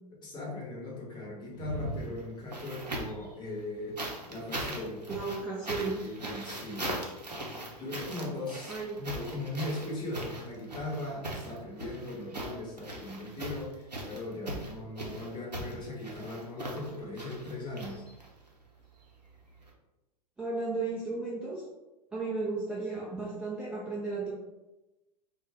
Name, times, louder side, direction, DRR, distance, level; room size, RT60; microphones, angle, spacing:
voice 1, 0.2-5.2 5.7-6.9 7.3-18.0, left 2 dB, 20° left, -2 dB, 0.9 m, -39 dB
sound 1, 1.5-3.3 4.0-18.5 19.6-19.7, right 1 dB, 90° right, 0.6 m, -39 dB
voice 2, 5.1-6.0 8.7-9.1 20.4-21.6 22.1-24.3, right 3 dB, 5° right, -6 dB, 0.4 m, -34 dB
2.3 x 2.2 x 3.3 m, 1.0 s
figure-of-eight pair, 95°, 20 cm